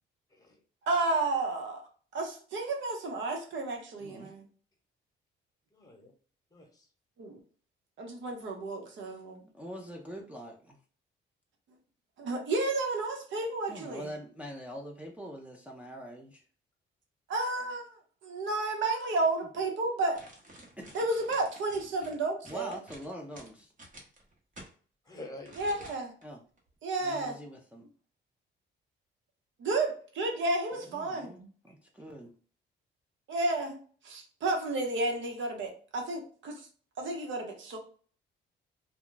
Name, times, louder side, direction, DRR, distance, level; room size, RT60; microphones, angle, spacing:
voice 1, 0.8-4.4 7.2-7.4 8.0-9.5 12.2-14.1 17.3-20.2 20.9-22.8 25.6-26.1 26.8-27.4 29.6-31.5 33.3-33.8 34.0-36.7 37.0-37.8, right 2 dB, 70° right, 3 dB, 0.9 m, -32 dB
voice 2, 4.0-4.3 9.0-9.2 9.5-10.8 13.7-16.5 20.8-21.0 22.4-23.7 26.2-26.4 27.0-27.9 30.9-31.4 31.6-32.3, equal, 5° right, -1 dB, 0.5 m, -44 dB
voice 3, 5.7-6.1 6.5-6.9 25.0-25.9 30.7-30.9, left 1 dB, 20° left, 2 dB, 1.0 m, -48 dB
sound 1, 20.1-24.7 25.4-26.2 26.6-26.7, right 1 dB, 40° right, 1.0 m, -51 dB
2.2 x 2.2 x 3.8 m, 0.42 s
cardioid pair, 90°, 20 cm